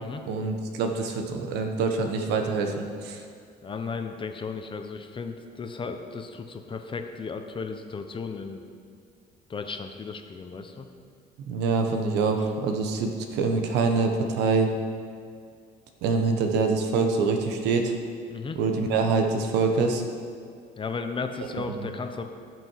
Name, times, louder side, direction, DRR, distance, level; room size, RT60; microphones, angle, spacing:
voice 1, 0.3-3.2 11.4-14.7 16.0-17.9 18.5-20.0 21.5-21.8, right 4 dB, 85° right, 4 dB, 1.3 m, -25 dB
voice 2, 3.6-8.6 9.5-10.9 18.3-18.6 20.8-22.2, left 4 dB, 30° left, 6 dB, 0.9 m, -35 dB
17.5 x 6.2 x 4.7 m, 2.2 s
cardioid pair, 110°, 17 cm